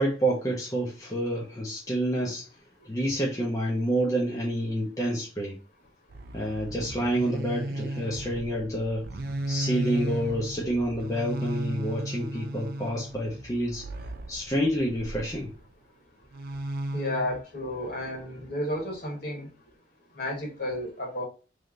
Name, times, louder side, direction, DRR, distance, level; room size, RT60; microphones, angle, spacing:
voice 1, 0.0-2.4 2.8-5.6 6.3-9.0 9.5-13.8 14.3-15.5, right 1 dB, 20° left, -4 dB, 0.7 m, -28 dB
sound 1, 6.1-15.7 16.3-17.4, right 1 dB, 50° right, 0.4 m, -35 dB
voice 2, 16.9-19.5 20.2-21.2, left 1 dB, 50° left, 0 dB, 1.5 m, -32 dB
3.3 x 2.7 x 3.7 m, 0.34 s
head